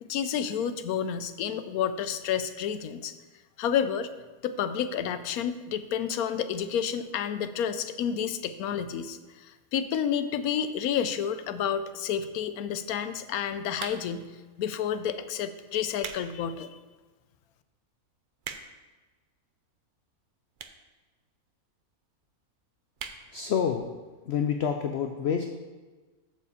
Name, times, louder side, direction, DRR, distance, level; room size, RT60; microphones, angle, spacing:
voice 1, 0.0-3.1 3.6-4.1 4.4-14.3 14.6-16.7, left 8 dB, 85° left, 11 dB, 1.1 m, -30 dB
sound 1, 13.7-14.3 15.0-15.2 15.7-16.3 16.7-16.8 17.4-17.5 17.7-17.8 18.1-18.9 19.7-19.8 20.5-20.9 21.2-21.3 21.5-21.6 21.8-21.9 22.2-22.5 22.9-23.2 23.6-23.7 23.9-24.0, right 6 dB, 65° right, 0.5 m, -40 dB
voice 2, 23.3-23.9 24.3-25.5, left 7 dB, 65° left, 6 dB, 0.7 m, -27 dB
6.7 x 4.9 x 7.0 m, 1.3 s
omnidirectional pair, 1.5 m